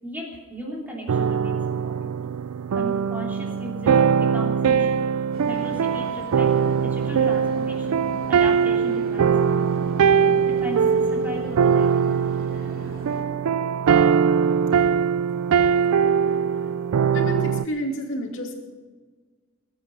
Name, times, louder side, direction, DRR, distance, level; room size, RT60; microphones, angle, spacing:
voice 1, 0.0-2.0 2.7-5.0 5.4-6.5 6.8-9.3 10.5-11.9, right 1 dB, 10° right, -2 dB, 3.1 m, -36 dB
sound 1, 1.1-17.7, right 7 dB, 90° right, 0.4 m, -21 dB
sound 2, 5.3-13.2, right 1 dB, 65° right, 3.1 m, -40 dB
voice 2, 17.1-18.5, right 1 dB, 60° left, 2 dB, 2.7 m, -29 dB
20.5 x 9.5 x 6.1 m, 1.4 s
head